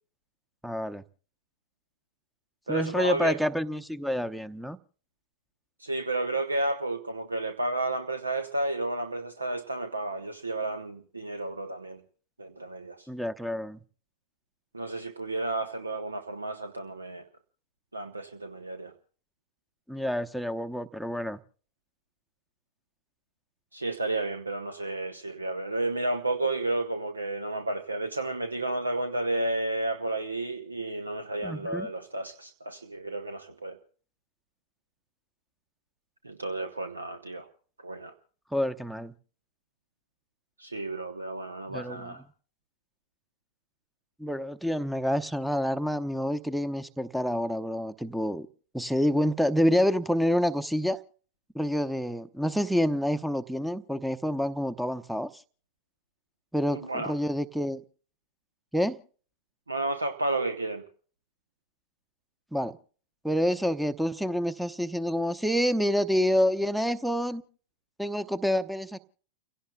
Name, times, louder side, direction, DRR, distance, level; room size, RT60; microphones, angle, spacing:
voice 1, 0.6-1.0 2.7-4.8 13.1-13.8 19.9-21.4 31.4-31.9 38.5-39.1 41.7-42.3 44.2-48.5 48.7-51.0 51.5-55.4 56.5-57.8 58.7-59.0 62.5-62.8 63.2-67.4 68.0-69.0, equal, ahead, 0.8 m, -28 dB
voice 2, 2.7-3.4 5.8-12.0 12.4-13.1 14.7-17.2 17.9-18.9 23.7-33.8 36.2-37.5 37.8-38.1 40.6-42.2 56.7-57.1 59.7-60.8, right 2 dB, 80° right, 0.9 m, -32 dB
30.0 x 17.0 x 2.3 m
figure-of-eight pair, 90°, 0 cm